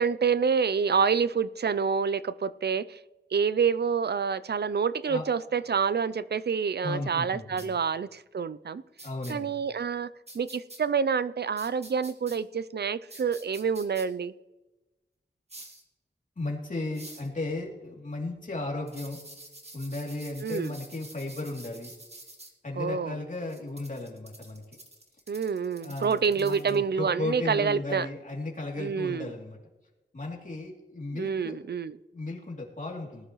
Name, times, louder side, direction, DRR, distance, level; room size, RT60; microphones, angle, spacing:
voice 1, 0.0-3.0 3.3-8.8 9.3-10.1 10.3-14.3 20.4-20.7 22.8-23.2 25.3-28.1 28.8-29.3 31.1-32.0, right 6 dB, 60° right, 16 dB, 0.5 m, -27 dB
voice 2, 6.8-7.8 9.0-9.5 16.4-19.2 19.7-21.9 22.6-24.6 25.8-29.6 30.1-31.6 32.1-33.3, left 2 dB, 45° left, -2 dB, 2.9 m, -35 dB
sound 1, 7.6-7.7 9.0-9.3 10.3-10.8 11.6-12.4 13.1-14.0 15.5-15.8 16.9-17.3 18.9-22.5 23.5-26.8, right 1 dB, 35° right, 2.0 m, -48 dB
19.0 x 11.5 x 3.1 m, 1.1 s
wide cardioid pair, 85°, 19 cm